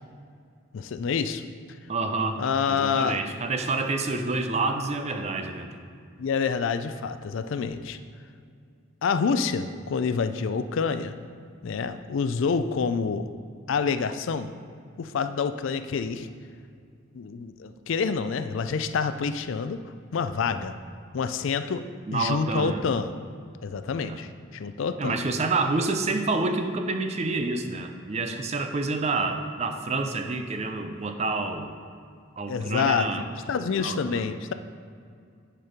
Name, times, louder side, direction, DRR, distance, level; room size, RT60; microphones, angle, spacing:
voice 1, 0.7-1.4 2.4-3.2 6.2-8.0 9.0-11.2 11.6-13.3 13.7-14.5 15.0-16.3 17.1-19.8 20.1-20.7 21.1-21.8 22.1-23.1 23.6-25.2 32.5-33.1 33.5-34.5, left 5 dB, 65° left, 10 dB, 0.4 m, -27 dB
voice 2, 1.9-2.4 2.7-5.7 22.1-22.8 24.0-24.2 25.0-31.7 32.4-33.2 33.8-34.2, right 3 dB, 30° right, 6 dB, 0.5 m, -28 dB
9.8 x 4.5 x 5.0 m, 2.3 s
head